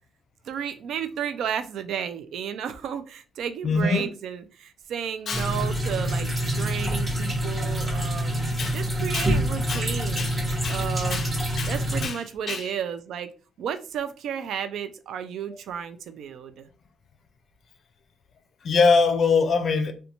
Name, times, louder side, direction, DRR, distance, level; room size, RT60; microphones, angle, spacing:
voice 1, 0.5-8.3 8.7-10.3 10.7-11.2 11.7-13.3 13.6-16.7, right 8 dB, 75° right, 0.3 m, -33 dB
voice 2, 3.6-4.1 5.3-5.5 8.6-8.8 9.1-9.3 9.7-9.8 10.2-10.4 10.6-10.8 11.1-11.3 11.6-11.7 12.0-12.2 12.5-12.6 18.6-19.9, left 4 dB, 55° left, 0.4 m, -23 dB
sound 1, 5.3-12.1, equal, 25° right, 0.9 m, -26 dB
2.5 x 2.2 x 2.8 m
cardioid pair, 90°, 0 cm